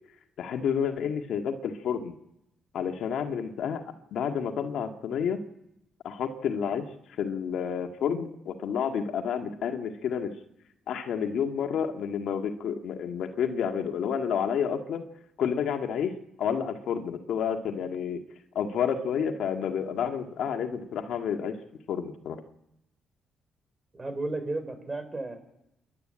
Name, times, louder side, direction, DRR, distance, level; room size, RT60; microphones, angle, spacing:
voice 1, 0.4-2.1 2.7-3.8 4.1-5.4 6.0-6.9 7.2-10.3 10.9-15.1 15.4-16.1 16.4-18.2 18.5-21.6 21.9-22.4, left 7 dB, 75° left, 5 dB, 1.8 m, -30 dB
voice 2, 23.9-25.4, right 2 dB, 20° right, 9 dB, 4.2 m, -33 dB
28.5 x 11.5 x 8.8 m, 0.84 s
cardioid pair, 90°, 0 cm